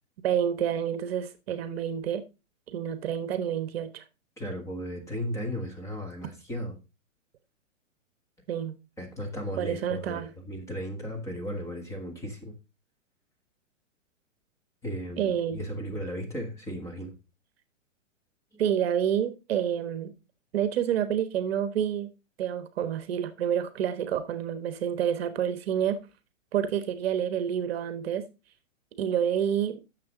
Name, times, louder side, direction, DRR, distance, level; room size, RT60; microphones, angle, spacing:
voice 1, 0.2-2.2 2.7-4.0 8.5-8.8 9.6-10.3 15.2-15.6 18.6-20.1 20.5-22.1 22.4-26.0 26.5-28.2 29.0-29.8, right 9 dB, 50° right, 1.1 m, -28 dB
voice 2, 4.4-6.8 9.0-12.5 14.8-17.1, equal, 10° left, 1.5 m, -35 dB
9.6 x 6.8 x 3.7 m
hypercardioid pair, 150°, 38 cm